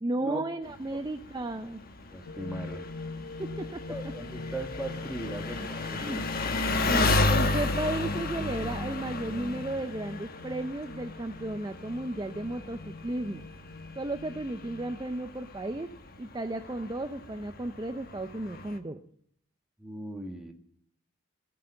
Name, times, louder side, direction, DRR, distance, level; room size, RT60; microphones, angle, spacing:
voice 1, 0.0-1.8 3.4-3.8 5.6-5.7 6.0-6.2 6.9-13.4 14.0-15.9 16.2-19.0, right 1 dB, 20° right, 8 dB, 0.5 m, -34 dB
Engine, 0.7-18.8, left 2 dB, 45° left, 1.2 m, -33 dB
voice 2, 2.1-2.8 3.9-6.3 19.8-20.5, right 1 dB, ahead, 2 dB, 1.7 m, -38 dB
sound 1, 2.3-15.1, left 3 dB, 70° left, 0.7 m, -43 dB
18.0 x 7.0 x 8.7 m, 0.67 s
head